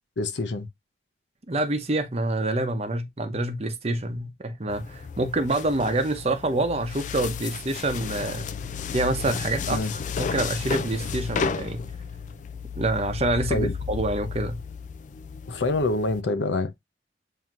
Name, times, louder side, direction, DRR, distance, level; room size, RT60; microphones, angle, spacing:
voice 1, 0.2-0.7 9.7-9.9 13.5-13.7 15.5-16.7, left 2 dB, 85° left, 0.7 m, -26 dB
voice 2, 1.5-8.5 8.9-11.8 12.8-14.6, right 2 dB, 35° right, 0.8 m, -27 dB
sound 1, 4.7-16.2, left 6 dB, 45° left, 0.4 m, -33 dB
7.4 x 2.8 x 2.4 m
head